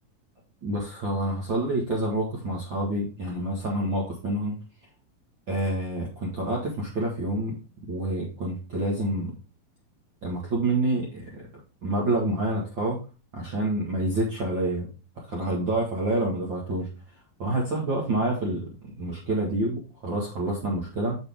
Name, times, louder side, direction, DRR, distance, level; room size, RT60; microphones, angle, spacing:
voice 1, 0.6-4.5 5.5-7.6 7.9-9.3 10.2-11.5 11.8-13.0 13.3-14.9 15.3-16.9 17.4-18.7 19.0-21.2, right 1 dB, 40° right, -3 dB, 1.9 m, -27 dB
7.1 x 6.7 x 3.5 m, 0.32 s
omnidirectional pair, 4.2 m